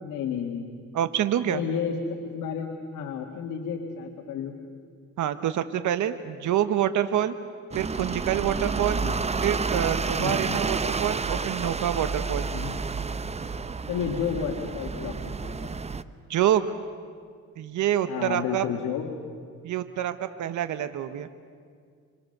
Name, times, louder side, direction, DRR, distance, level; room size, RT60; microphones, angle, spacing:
voice 1, 0.0-0.8 1.4-4.6 9.0-9.2 10.1-10.6 12.5-12.8 13.9-15.8 18.1-19.1, left 7 dB, 85° left, 1 dB, 2.0 m, -32 dB
voice 2, 0.9-1.6 5.2-7.3 7.7-9.0 9.4-12.5 16.3-16.7 17.6-18.6 19.6-21.3, right 11 dB, 75° right, 11 dB, 1.1 m, -26 dB
sound 1, 7.7-16.0, right 4 dB, 20° right, 0.7 m, -30 dB
27.0 x 25.5 x 6.7 m, 2.1 s
cardioid pair, 90°, 30 cm